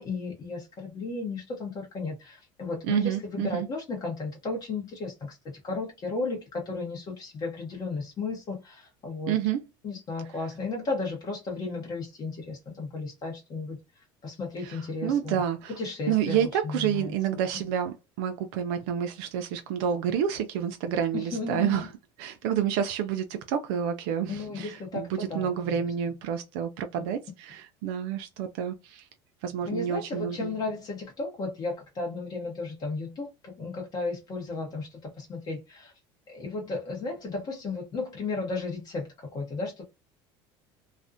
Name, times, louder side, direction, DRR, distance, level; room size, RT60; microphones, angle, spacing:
voice 1, 0.0-9.4 9.8-13.8 14.2-15.4 15.8-17.1 21.1-21.9 24.3-25.9 26.9-27.0 29.6-35.9 36.3-39.9, left 3 dB, 35° left, 0.7 m, -34 dB
voice 2, 2.8-3.7 9.3-9.6 14.6-15.8 16.1-21.9 22.2-29.1 29.4-30.5, right 9 dB, 80° right, 0.4 m, -29 dB
2.4 x 2.0 x 2.5 m
supercardioid pair, 125°, 12 cm